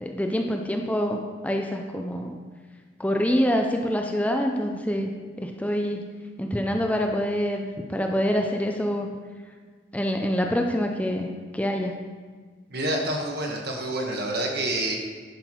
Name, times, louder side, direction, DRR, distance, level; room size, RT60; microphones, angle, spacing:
voice 1, 0.0-2.4 3.0-5.1 5.4-6.0 6.4-9.1 9.9-11.9, equal, 10° left, 3 dB, 0.6 m, -26 dB
voice 2, 12.7-14.9, right 1 dB, 60° right, 0 dB, 1.6 m, -27 dB
11.0 x 5.8 x 4.5 m, 1.5 s
head